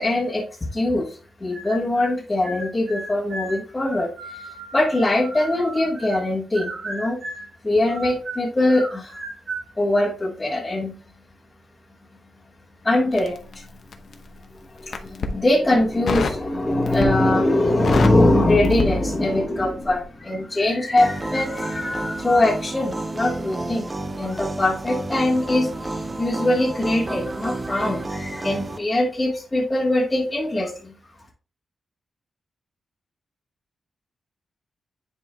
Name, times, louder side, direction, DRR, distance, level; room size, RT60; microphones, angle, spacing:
voice 1, 0.0-7.2 7.6-9.2 9.8-11.0 12.8-13.7 14.7-23.9 24.2-30.9, left 1 dB, 15° left, -5 dB, 1.3 m, -22 dB
sound 1, 1.5-2.1 2.4-6.3 6.5-7.5 7.9-9.7, right 2 dB, 45° right, 2.4 m, -35 dB
Crackle, 13.1-14.3 14.8-15.4 16.1-16.5 16.8-17.3 17.6-19.5 19.8-20.0, left 4 dB, 60° left, 0.9 m, -27 dB
sound 2, 21.0-28.8, right 2 dB, 20° right, 0.5 m, -30 dB
10.5 x 4.4 x 2.2 m, 0.38 s
wide cardioid pair, 155°, 0 cm